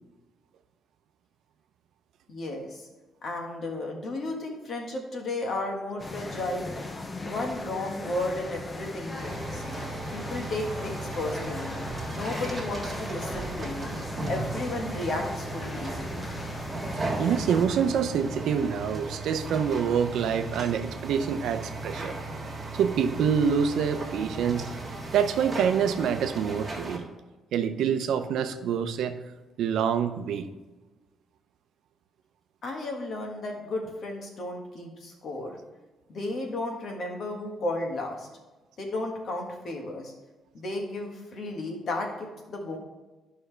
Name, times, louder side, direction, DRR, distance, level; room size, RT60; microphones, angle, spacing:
voice 1, 2.3-2.8 3.2-6.7 7.2-9.6 10.1-11.8 12.1-13.9 14.3-16.0 32.6-35.6 36.1-38.3 38.8-40.1 40.5-42.8, left 2 dB, 45° left, 1 dB, 1.5 m, -33 dB
sound 1, 6.0-17.7, left 2 dB, 20° left, 0.6 m, -38 dB
sound 2, 9.2-27.0, right 2 dB, 15° right, 1.6 m, -36 dB
voice 2, 17.2-22.2 22.7-24.7 25.1-27.1 27.5-29.2 29.6-30.5, right 7 dB, 75° right, 8 dB, 0.6 m, -26 dB
11.5 x 5.5 x 3.3 m, 1.1 s
cardioid pair, 170°, 0 cm